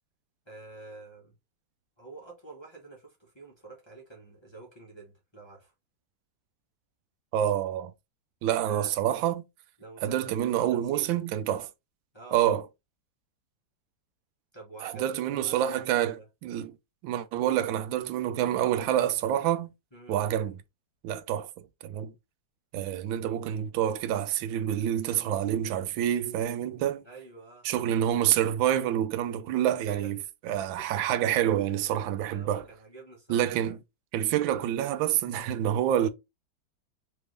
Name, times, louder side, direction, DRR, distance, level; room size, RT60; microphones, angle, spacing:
voice 1, 0.4-1.3 2.0-5.7 8.7-8.9 9.8-11.2 12.1-12.4 14.5-16.3 19.9-20.2 27.0-27.7 29.9-30.1 30.6-30.7 32.3-33.7, right 3 dB, 20° left, 0.9 m, -48 dB
voice 2, 7.3-7.9 8.4-9.4 10.0-11.7 12.3-12.6 14.8-16.1 16.4-16.7 17.0-19.7 20.1-20.6 21.0-21.5 21.8-22.1 22.7-27.0 27.6-32.6 33.3-33.8 34.1-36.1, right 11 dB, 85° right, 1.3 m, -27 dB
3.4 x 3.4 x 3.2 m
omnidirectional pair, 2.0 m